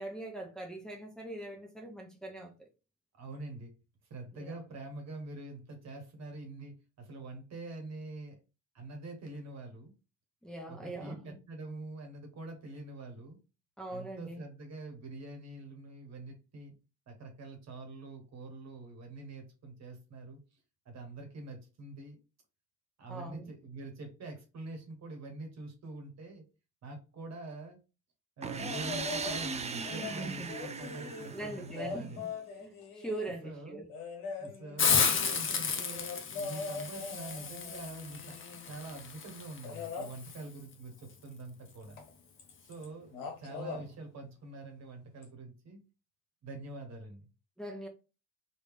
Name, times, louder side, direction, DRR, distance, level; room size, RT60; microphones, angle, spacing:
voice 1, 0.0-2.7 4.3-4.5 10.4-11.4 13.8-14.4 23.1-23.5 30.0-30.5 30.9-31.0 31.3-32.3 32.6-33.9 47.6-47.9, right 1 dB, ahead, 0.9 m, -42 dB
voice 2, 3.2-3.7 4.1-8.4 8.7-9.9 10.7-13.4 13.9-16.7 17.1-20.4 20.8-22.2 23.0-26.4 26.8-27.8 28.4-32.2 33.4-33.8 34.4-42.0 42.6-45.8 46.4-47.2, right 2 dB, 50° right, 1.3 m, -45 dB
sound 1, 28.4-32.2, right 5 dB, 20° right, 0.5 m, -38 dB
sound 2, 28.6-29.5 29.9-33.4 33.9-38.8 39.6-40.1 42.0-42.1 42.4-42.9 43.1-43.8 45.2-45.3, left 4 dB, 70° left, 1.1 m, -42 dB
Hiss, 34.8-40.4, left 6 dB, 35° left, 0.8 m, -33 dB
3.2 x 2.7 x 3.3 m
hypercardioid pair, 55°, 35 cm